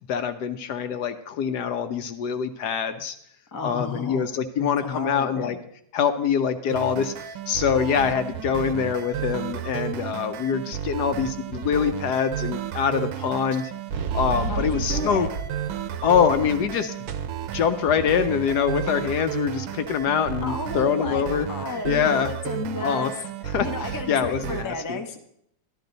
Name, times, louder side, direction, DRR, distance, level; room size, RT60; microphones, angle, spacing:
voice 1, 0.1-3.2 3.6-5.6 5.9-13.7 14.1-15.3 16.0-16.9 17.5-21.5 21.8-22.3 22.8-23.1 23.4-25.0, left 7 dB, 70° left, 8 dB, 1.1 m, -24 dB
voice 2, 3.5-4.2 4.6-5.6 14.5-15.3 20.4-23.1 23.6-25.2, left 3 dB, 25° left, 4 dB, 0.4 m, -32 dB
sound 1, 6.7-24.7, right 10 dB, 80° right, 1.4 m, -33 dB
sound 2, 13.9-16.8 17.1-20.6, right 5 dB, 65° right, 1.1 m, -34 dB
13.0 x 12.0 x 3.9 m, 0.71 s
omnidirectional pair, 2.1 m